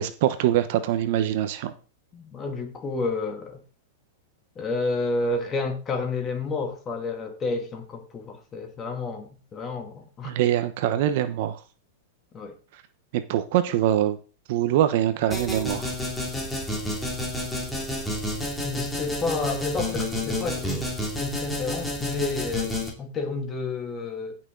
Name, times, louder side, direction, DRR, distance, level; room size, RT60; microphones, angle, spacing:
voice 1, 0.0-1.7 10.2-11.6 13.1-14.2 14.5-15.9, right 11 dB, 55° right, 1.0 m, -23 dB
voice 2, 2.1-3.6 4.6-10.3 12.3-12.6 18.6-24.4, left 3 dB, 20° left, 2.5 m, -30 dB
sound 1, 15.3-22.9, left 1 dB, 5° left, 2.8 m, -30 dB
15.5 x 6.2 x 3.9 m
supercardioid pair, 150°, 0 cm